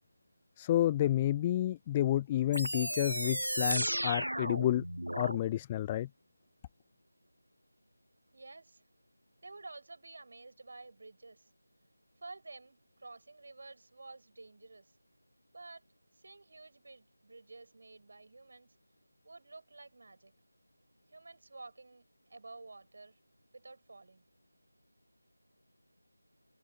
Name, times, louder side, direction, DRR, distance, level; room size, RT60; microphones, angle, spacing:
voice 1, 0.6-4.8 5.2-6.1, left 13 dB, 10° left, 0.3 m, -30 dB
sound 1, 2.5-5.4, right 1 dB, 80° right, 0.5 m, -34 dB
voice 2, 8.3-8.8 9.4-11.5 12.2-14.9 15.5-15.8 16.1-18.8 19.2-20.3 21.1-23.2 23.5-24.2, right 3 dB, 45° right, 5.4 m, -51 dB
figure-of-eight pair, 165°, 0 cm